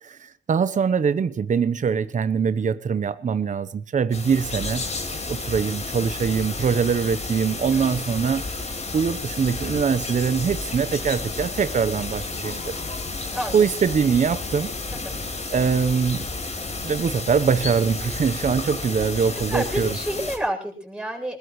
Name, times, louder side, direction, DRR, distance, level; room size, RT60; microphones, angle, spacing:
voice 1, 0.0-4.8 5.3-8.5 8.9-12.7 13.5-14.7 15.5-16.3 16.8-20.0, right 6 dB, 40° right, 1.0 m, -23 dB
sound 1, 4.1-20.4, left 3 dB, 35° left, 5.0 m, -31 dB
voice 2, 7.7-8.1 13.3-13.7 14.9-15.2 19.5-21.4, right 1 dB, 5° right, 7.9 m, -29 dB
21.0 x 20.5 x 3.2 m
cardioid pair, 90°, 20 cm